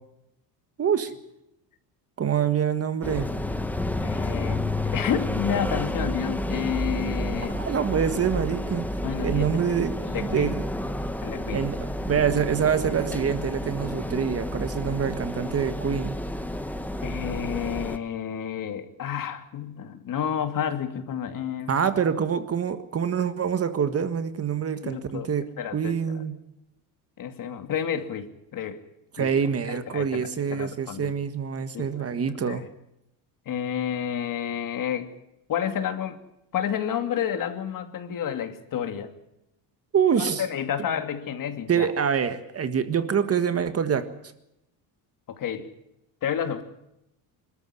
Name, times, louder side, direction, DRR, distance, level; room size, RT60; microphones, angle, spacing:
voice 1, 0.8-1.1 2.2-3.3 7.5-8.9 9.2-9.9 10.2-10.6 11.5-16.1 21.7-25.4 25.7-26.4 29.2-32.6 39.9-40.4 41.7-44.0, right 7 dB, 30° right, 10 dB, 1.6 m, -25 dB
sound 1, 3.0-18.0, left 1 dB, 5° left, 1.3 m, -30 dB
voice 2, 4.0-7.6 9.0-9.6 10.0-10.5 11.2-11.7 17.0-21.8 24.8-25.3 25.6-26.2 27.2-28.8 29.2-29.3 29.7-31.1 31.7-32.0 32.5-32.7 33.5-35.1 35.5-36.2 36.5-39.1 40.2-41.9 45.3-45.7 46.2-46.6, left 9 dB, 45° left, 8 dB, 2.6 m, -30 dB
26.0 x 13.5 x 9.8 m, 0.84 s
cardioid pair, 140°, 45 cm